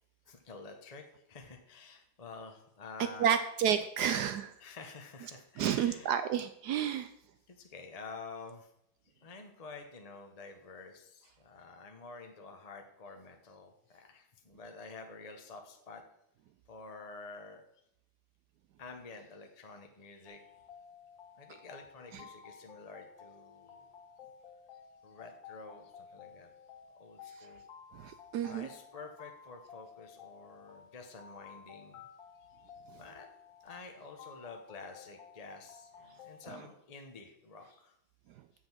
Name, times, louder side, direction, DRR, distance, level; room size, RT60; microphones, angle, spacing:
voice 1, 0.3-3.4 4.6-6.2 6.8-6.9 7.5-8.7 9.2-16.0 16.7-17.6 18.8-20.4 21.4-23.9 25.0-26.5 27.0-27.6 28.4-32.0 33.0-33.3 33.6-37.9, left 4 dB, 35° left, 4 dB, 0.6 m, -49 dB
voice 2, 3.2-4.5 5.6-7.1 27.9-28.7, right 9 dB, 75° right, 10 dB, 0.9 m, -30 dB
sound 1, 20.3-36.6, left 7 dB, 75° left, 1.9 m, -54 dB
7.6 x 6.2 x 6.0 m, 0.76 s
omnidirectional pair, 2.1 m